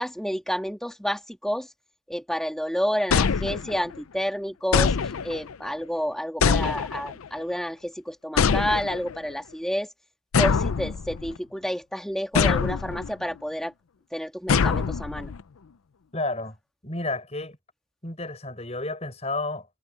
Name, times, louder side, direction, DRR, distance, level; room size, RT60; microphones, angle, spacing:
voice 1, 0.0-1.7 2.1-5.0 5.2-9.9 10.4-13.7 14.1-15.3, equal, ahead, 2.0 m, -29 dB
sound 1, 3.1-4.0 4.7-5.5 6.4-7.3 8.4-9.2 10.3-11.4 12.3-13.1 14.5-15.4, left 6 dB, 85° left, 0.5 m, -24 dB
voice 2, 16.1-16.6 16.8-17.6 18.0-19.7, left 2 dB, 30° left, 6.3 m, -31 dB
head